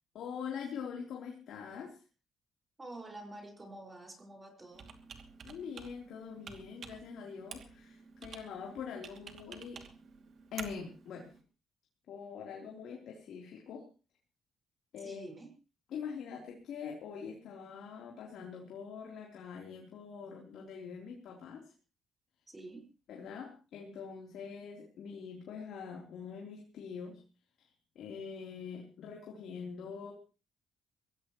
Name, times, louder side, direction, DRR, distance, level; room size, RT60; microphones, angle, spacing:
voice 1, 0.1-2.0 5.4-9.8 10.5-11.3 12.1-13.8 14.9-15.3 15.9-21.7 23.1-27.2 27.6-27.7 28.0-30.1, left 6 dB, 75° left, 0 dB, 3.7 m, -44 dB
voice 2, 2.8-4.9 15.0-15.5 22.5-22.9, right 2 dB, 20° right, 3 dB, 5.5 m, -48 dB
Computer keyboard, 4.7-11.4, right 6 dB, 60° right, 2.6 m, -51 dB
23.0 x 16.5 x 3.2 m, 0.33 s
cardioid pair, 90°, 0 cm